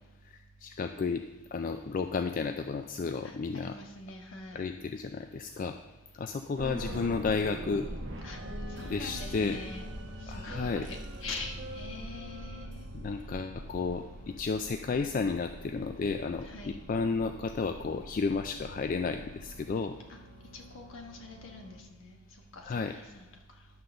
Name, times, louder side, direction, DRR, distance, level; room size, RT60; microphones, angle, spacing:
voice 1, 0.3-1.2 1.5-3.7 4.5-5.8 6.1-7.9 8.9-9.6 10.3-10.9 12.9-20.0 22.7-22.9, left 4 dB, 40° left, 7 dB, 0.3 m, -32 dB
voice 2, 3.2-4.7 8.2-8.4 8.7-9.9 10.2-12.9 16.4-16.7 20.1-20.2 20.5-22.2 22.5-23.3, left 3 dB, 65° left, 2 dB, 1.3 m, -44 dB
sound 1, 6.6-21.8, right 1 dB, 55° right, 1.0 m, -43 dB
11.0 x 3.8 x 6.7 m, 1.1 s
head